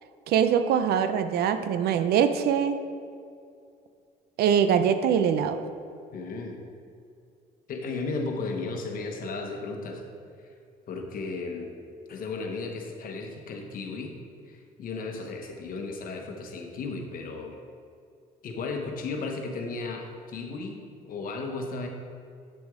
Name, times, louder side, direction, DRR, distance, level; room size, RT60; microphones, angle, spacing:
voice 1, 0.3-2.8 4.4-5.6, right 8 dB, 70° right, 10 dB, 0.5 m, -23 dB
voice 2, 6.1-6.6 7.7-10.0 10.9-11.7 12.1-14.1 14.5-17.6 18.4-21.9, left 3 dB, 55° left, 3 dB, 1.1 m, -34 dB
8.4 x 6.0 x 3.7 m, 2.4 s
cardioid pair, 110°, 17 cm